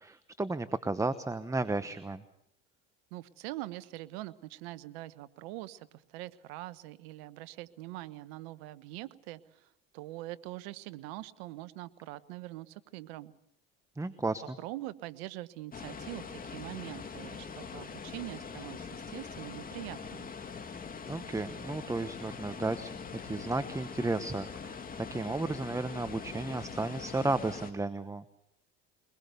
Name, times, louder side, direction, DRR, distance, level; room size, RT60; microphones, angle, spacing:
voice 1, 0.0-2.2 14.0-14.6 21.1-22.9 23.2-24.8 25.1-28.3, right 2 dB, 10° right, 13 dB, 1.0 m, -33 dB
voice 2, 3.1-13.3 14.6-20.3, right 17 dB, 85° right, 15 dB, 1.1 m, -43 dB
sound 1, 15.7-27.7, left 5 dB, 30° left, 2.6 m, -43 dB
23.0 x 21.0 x 6.9 m, 0.77 s
supercardioid pair, 90°, 30 cm